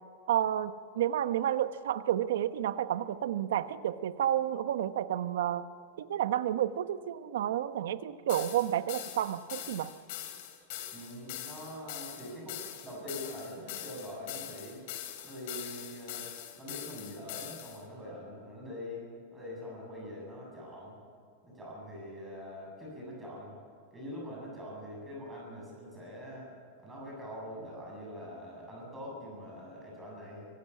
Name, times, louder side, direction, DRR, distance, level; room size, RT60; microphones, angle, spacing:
voice 1, 0.3-5.7 6.0-9.9, right 11 dB, 80° right, 12 dB, 1.0 m, -30 dB
sound 1, 8.3-17.8, left 12 dB, 50° left, 2.8 m, -43 dB
voice 2, 10.9-14.8 15.2-16.3 16.6-21.0 21.4-23.6 23.9-26.5 26.8-30.5, equal, 10° right, -3 dB, 7.8 m, -44 dB
24.5 x 15.5 x 8.5 m, 2.2 s
supercardioid pair, 170°, 0 cm